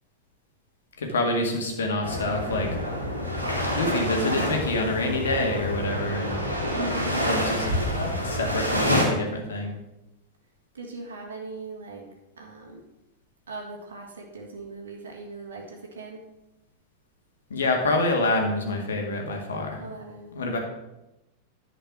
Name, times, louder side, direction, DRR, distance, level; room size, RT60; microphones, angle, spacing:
voice 1, 1.0-2.7 3.7-6.4 7.2-7.7 8.2-9.8 17.5-19.8 20.3-20.6, left 2 dB, 65° left, 2 dB, 1.9 m, -27 dB
sound 1, 2.0-9.1, equal, 85° right, 2.1 m, -27 dB
voice 2, 6.7-7.3 10.7-12.1 12.4-12.8 13.5-16.2 19.8-20.3, right 3 dB, 65° right, 0 dB, 1.9 m, -39 dB
10.5 x 5.2 x 6.0 m, 0.96 s
figure-of-eight pair, 90°, 0 cm